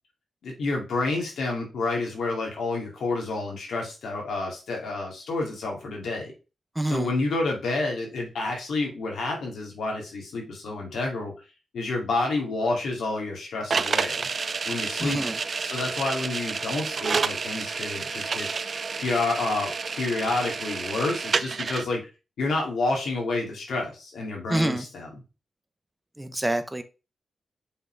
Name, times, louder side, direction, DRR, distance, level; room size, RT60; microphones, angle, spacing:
voice 1, 0.4-6.3 6.8-11.3 11.7-14.3 14.7-15.3 15.6-22.0 22.4-25.2, left 3 dB, 80° left, 1 dB, 2.4 m, -29 dB
voice 2, 6.8-7.1 15.0-15.4 24.5-24.8 26.2-26.8, right 1 dB, 15° right, 9 dB, 0.8 m, -27 dB
sound 1, 13.7-21.9, right 5 dB, 55° right, 0.4 m, -29 dB
5.6 x 3.8 x 4.6 m, 0.31 s
cardioid pair, 55°, 0 cm